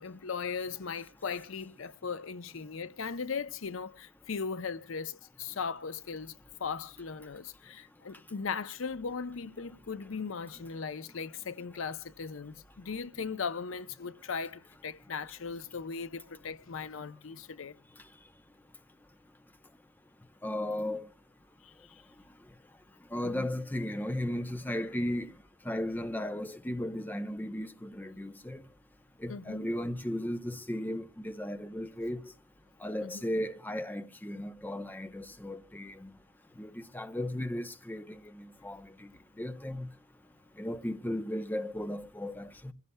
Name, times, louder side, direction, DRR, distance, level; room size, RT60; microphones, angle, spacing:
voice 1, 0.0-6.3 6.6-17.8 21.6-22.0 23.2-23.5 29.3-29.7 33.0-33.2, left 5 dB, 70° left, 0.6 m, -38 dB
voice 2, 20.4-21.1 23.1-25.3 25.6-28.6 29.2-32.2 32.8-36.1 36.6-39.1 39.4-39.9 40.6-42.7, left 1 dB, 10° left, 0.6 m, -35 dB
26.5 x 16.0 x 2.2 m
head